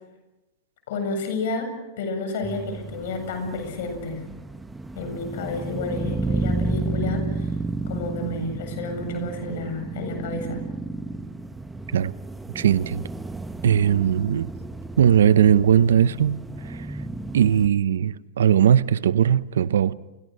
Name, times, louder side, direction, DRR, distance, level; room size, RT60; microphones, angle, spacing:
voice 1, 0.9-1.7 2.0-4.2 5.0-7.5 7.9-10.6, left 3 dB, 70° left, 7.9 m, -31 dB
sound 1, 2.4-17.7, right 3 dB, 10° right, 1.2 m, -32 dB
voice 2, 8.2-8.6 9.0-9.6 10.3-10.6 11.9-12.1 12.5-13.0 13.6-14.5 15.0-17.0 17.3-19.9, right 9 dB, 85° right, 0.9 m, -20 dB
29.0 x 24.0 x 6.6 m
hypercardioid pair, 120°, 0 cm